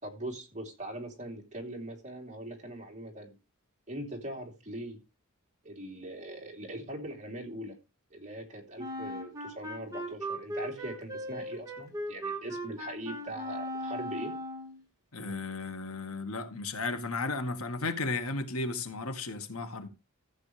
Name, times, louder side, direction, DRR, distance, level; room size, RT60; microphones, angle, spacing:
voice 1, 0.0-3.4 3.9-5.0 5.6-7.8 8.1-14.3, right 1 dB, 35° right, 3.5 m, -41 dB
Wind instrument woodwind instrument, 8.8-14.8, equal, 15° right, 2.5 m, -38 dB
voice 2, 15.1-19.9, left 3 dB, 75° left, 1.8 m, -34 dB
14.5 x 8.3 x 3.4 m
head